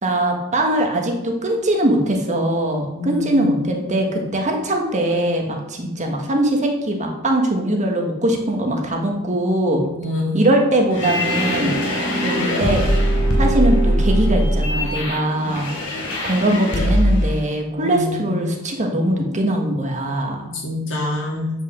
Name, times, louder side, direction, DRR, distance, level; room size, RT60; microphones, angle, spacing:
voice 1, 0.0-9.8 10.3-11.7 12.1-12.9 13.4-15.7 16.2-20.4, right 1 dB, 35° right, 2 dB, 1.3 m, -21 dB
voice 2, 3.0-3.4 9.9-10.4 15.4-15.9 17.8-18.3 20.4-21.5, left 1 dB, 60° left, -2 dB, 2.8 m, -27 dB
sound 1, 10.9-17.3, equal, 85° left, 3.4 m, -20 dB
8.4 x 5.4 x 6.3 m, 0.95 s
head